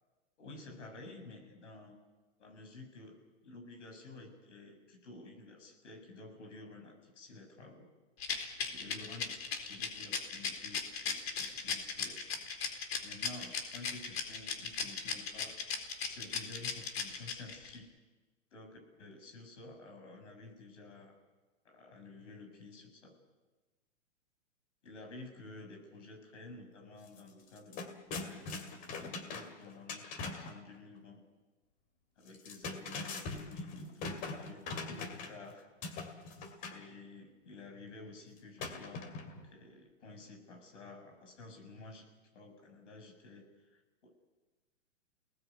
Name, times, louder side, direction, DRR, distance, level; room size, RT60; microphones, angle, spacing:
voice 1, 0.4-1.9 2.4-3.2 3.4-7.9 8.7-12.2 13.0-15.6 16.1-17.9 18.5-21.1 21.6-23.1 24.8-28.5 29.0-31.2 32.2-35.7 36.7-39.0 39.4-42.0 42.3-44.1, left 3 dB, 70° left, 3 dB, 7.3 m, -51 dB
Rattle, 8.2-17.8, left 6 dB, 55° left, 4.1 m, -36 dB
sound 1, 27.1-27.2 27.5-30.6 32.3-35.5 35.8-36.8 38.6-39.5, left 4 dB, 20° left, 2.3 m, -42 dB
28.5 x 19.5 x 8.4 m, 1.2 s
hypercardioid pair, 155°, 37 cm